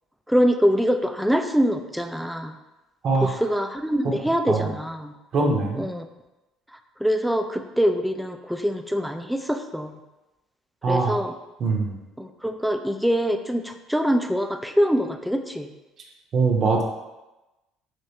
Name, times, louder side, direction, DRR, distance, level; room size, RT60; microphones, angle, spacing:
voice 1, 0.3-2.6 3.2-5.1 5.8-6.1 6.7-10.0 10.9-11.4 12.2-15.7, equal, ahead, 6 dB, 0.4 m, -24 dB
voice 2, 5.3-5.9 10.8-11.2 11.6-12.0 16.3-16.8, right 3 dB, 45° right, 1 dB, 0.8 m, -22 dB
5.3 x 3.1 x 2.9 m, 1.0 s
figure-of-eight pair, 55°, 0 cm